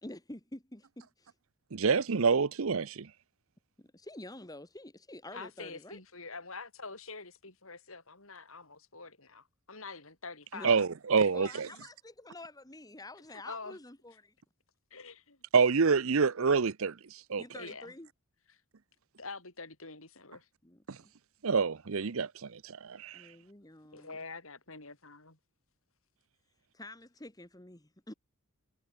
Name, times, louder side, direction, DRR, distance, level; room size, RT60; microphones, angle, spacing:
voice 1, 0.0-1.3 3.8-6.0 10.5-10.7 11.3-14.3 17.4-18.1 20.6-20.8 23.1-24.2 26.7-28.1, left 1 dB, 15° left, 1.9 m, -48 dB
voice 2, 1.7-3.1 10.6-11.7 15.5-17.0 17.3-17.4 21.4-23.2, right 5 dB, 70° right, 0.7 m, -27 dB
voice 3, 5.3-10.9 11.7-11.8 13.3-13.8 14.9-15.4 17.6-17.9 19.2-20.5 23.9-25.4, left 4 dB, 70° left, 6.8 m, -46 dB
head